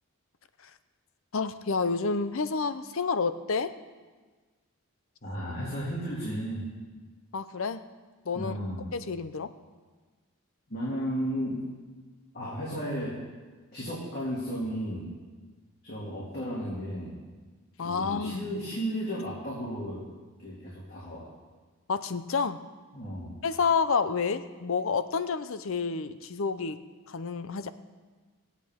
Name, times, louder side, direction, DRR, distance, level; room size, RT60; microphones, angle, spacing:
voice 1, 1.3-3.7 7.3-7.8 8.3-8.5 8.9-9.5 17.8-18.4 21.9-22.6 23.4-26.8 27.1-27.7, left 5 dB, 60° left, 12 dB, 0.6 m, -29 dB
voice 2, 5.2-6.7 8.3-8.9 10.7-11.6 12.3-13.2 13.7-15.1 15.8-17.2 17.8-20.0 20.4-21.3 22.9-23.4, equal, 45° left, -6 dB, 2.4 m, -34 dB
19.5 x 8.3 x 3.6 m, 1.4 s
head